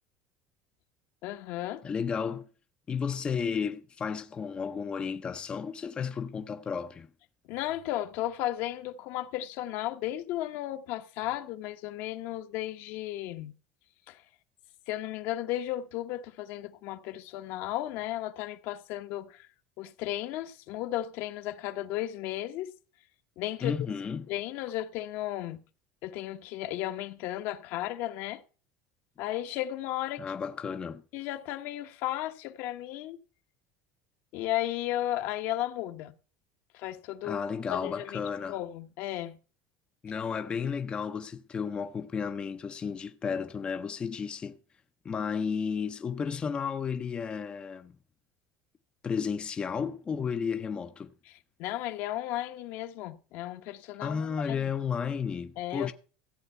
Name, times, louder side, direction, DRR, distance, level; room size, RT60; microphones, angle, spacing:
voice 1, 1.2-1.9 7.5-13.5 14.1-14.2 14.9-19.5 19.8-22.7 23.4-23.7 24.3-25.6 26.0-28.4 29.2-30.2 31.1-33.2 34.3-36.1 36.7-37.4 37.7-38.2 38.5-39.4 51.3-54.2 54.5-54.7 55.6-55.9, left 14 dB, 65° left, 1.1 m, -34 dB
voice 2, 1.8-2.5 2.9-7.1 23.6-24.3 30.2-31.0 37.2-38.6 40.0-44.6 45.0-48.0 49.0-51.1 54.0-55.9, left 6 dB, 25° left, 0.6 m, -33 dB
14.0 x 8.0 x 5.6 m
supercardioid pair, 135°, 4 cm